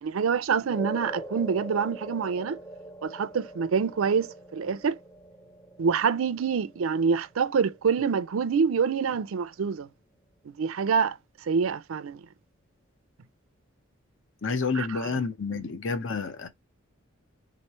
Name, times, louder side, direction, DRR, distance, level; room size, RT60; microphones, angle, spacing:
voice 1, 0.0-2.6 3.0-5.0 5.8-9.9 10.6-11.2 11.5-12.2 14.7-15.1 15.5-15.6, right 6 dB, 80° right, 0.4 m, -26 dB
sound 1, 0.7-9.2, right 2 dB, 15° left, 0.7 m, -43 dB
voice 2, 14.4-16.5, left 4 dB, 65° left, 0.8 m, -29 dB
3.9 x 3.1 x 4.2 m
head